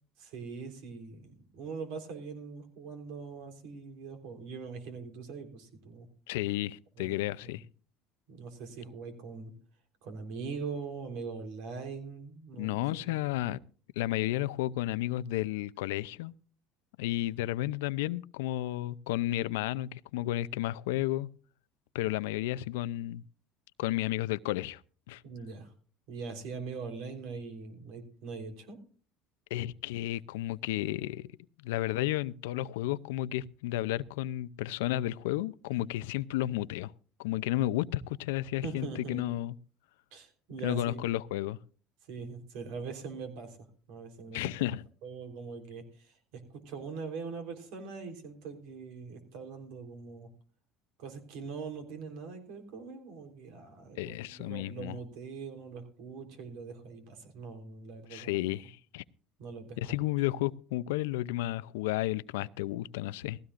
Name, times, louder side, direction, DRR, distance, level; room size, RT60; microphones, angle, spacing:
voice 1, 0.2-6.1 7.0-7.1 7.4-7.6 8.3-9.5 10.0-13.4 25.2-25.7 26.1-28.8 38.6-39.2 40.1-41.0 42.1-44.5 45.0-50.3 51.0-58.4 59.4-59.9, right 5 dB, 75° right, 3.6 m, -42 dB
voice 2, 6.3-7.6 12.5-13.6 14.0-16.3 17.0-21.3 21.9-23.2 23.8-24.8 25.1-25.2 29.5-31.3 31.6-36.9 37.2-39.5 40.6-41.6 44.3-44.8 54.0-55.0 58.1-59.0 59.8-63.4, left 15 dB, 90° left, 0.5 m, -32 dB
18.5 x 16.0 x 2.5 m
supercardioid pair, 95°, 0 cm